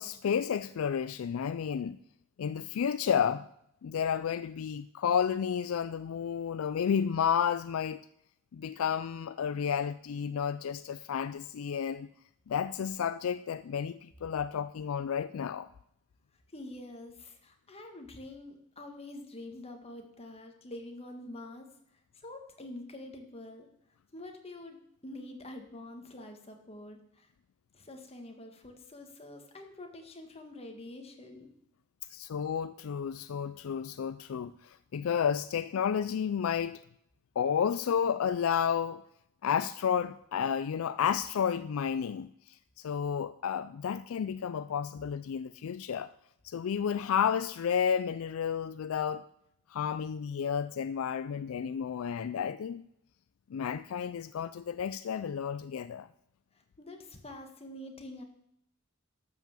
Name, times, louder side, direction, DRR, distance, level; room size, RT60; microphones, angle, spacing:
voice 1, 0.0-2.0 2.4-3.5 3.8-8.0 8.5-12.1 12.5-15.7 32.1-36.8 37.4-39.0 39.4-42.3 42.8-46.1 46.4-49.2 49.7-52.8 53.5-56.1, left 7 dB, 70° left, 0.4 m, -31 dB
voice 2, 16.5-21.7 22.2-23.7 24.1-27.3 27.7-31.5 56.5-58.2, left 1 dB, 30° left, 1.6 m, -46 dB
12.0 x 5.6 x 7.4 m
head